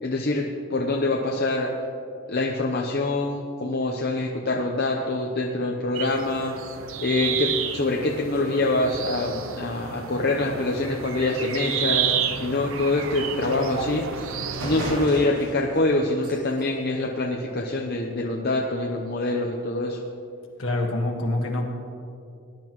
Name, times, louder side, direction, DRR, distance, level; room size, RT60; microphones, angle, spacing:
voice 1, 0.0-1.7 2.3-6.5 7.0-14.0 14.6-20.0, left 2 dB, 45° left, -1 dB, 0.8 m, -25 dB
sound 1, 6.0-15.1, right 7 dB, 65° right, 0.7 m, -31 dB
sound 2, 14.1-14.2 14.5-18.0, right 1 dB, 90° right, 2.6 m, -36 dB
voice 2, 20.6-21.7, left 1 dB, 65° left, 1 dB, 1.7 m, -25 dB
20.0 x 11.0 x 3.1 m, 2.5 s
head